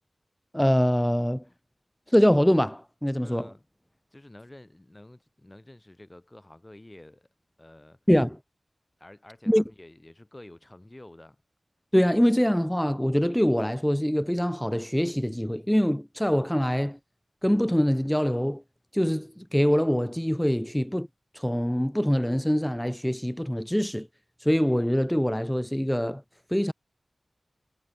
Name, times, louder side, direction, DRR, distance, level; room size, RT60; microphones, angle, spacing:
voice 1, 0.5-1.4 2.1-3.5 8.1-8.4 9.5-9.6 11.9-17.0 17.4-18.6 18.9-21.1 21.4-24.1 24.4-26.2 26.5-26.7, equal, 5° left, 0.4 m, -24 dB
voice 2, 3.2-3.7 4.1-7.3 7.6-8.0 9.0-11.4, left 1 dB, 20° left, 7.3 m, -49 dB
wide cardioid pair, 90°, 0 cm